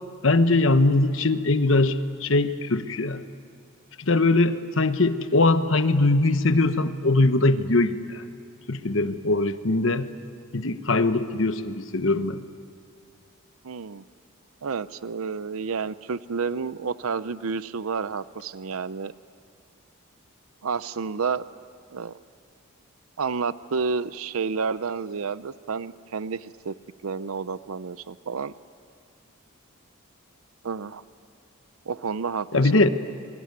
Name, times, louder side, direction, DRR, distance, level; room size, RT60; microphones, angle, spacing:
voice 1, 0.2-3.2 4.0-8.2 8.7-10.1 10.5-12.4 32.5-32.9, left 2 dB, 65° left, 10 dB, 1.1 m, -21 dB
voice 2, 13.6-14.0 14.6-19.1 20.6-21.4 21.9-22.1 23.2-26.7 27.0-28.5 30.6-31.0 31.9-32.8, right 5 dB, 85° right, 15 dB, 0.6 m, -30 dB
27.0 x 23.0 x 9.5 m, 2.2 s
head